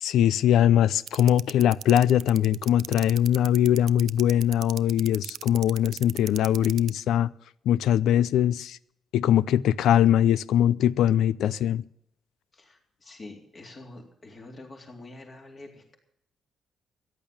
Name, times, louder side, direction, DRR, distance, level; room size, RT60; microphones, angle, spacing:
voice 1, 0.0-7.3 7.7-8.8 9.1-11.8, left 11 dB, 90° left, 0.5 m, -21 dB
sound 1, 1.1-6.9, right 10 dB, 70° right, 0.5 m, -36 dB
voice 2, 12.5-16.0, left 2 dB, 35° left, 3.8 m, -46 dB
14.0 x 11.0 x 7.2 m
cardioid pair, 130°, 0 cm